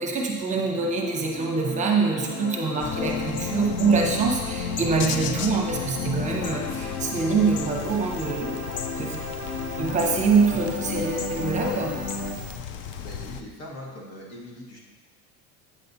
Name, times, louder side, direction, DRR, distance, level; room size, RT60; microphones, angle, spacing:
voice 1, 0.0-8.6 9.0-9.2 9.8-12.0, right 4 dB, 25° right, 1 dB, 0.7 m, -25 dB
sound 1, 0.7-12.3, left 5 dB, 85° left, 0.8 m, -33 dB
sound 2, 2.8-13.4, left 7 dB, 40° left, 0.4 m, -35 dB
sound 3, 6.2-12.5, right 8 dB, 10° left, 1.6 m, -43 dB
voice 2, 13.0-14.8, left 1 dB, 60° left, -3 dB, 1.8 m, -41 dB
8.5 x 6.8 x 2.7 m, 1.3 s
cardioid pair, 145°, 30 cm